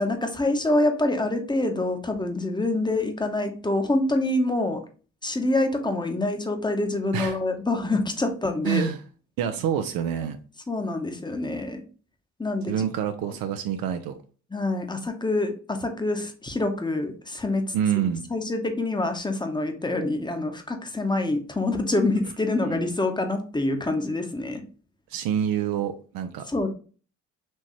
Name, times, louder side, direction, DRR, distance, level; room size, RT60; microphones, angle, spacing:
voice 1, 0.0-4.8 5.2-8.9 10.7-11.8 12.4-12.7 13.2-13.3 14.5-17.7 18.3-24.6 26.5-26.7, left 2 dB, 10° left, 0.9 m, -26 dB
voice 2, 8.6-9.0 9.4-10.4 12.7-14.2 17.7-18.3 22.7-22.8 25.1-26.4, right 9 dB, 65° right, 0.6 m, -27 dB
4.5 x 2.9 x 3.0 m
hypercardioid pair, 55°, 37 cm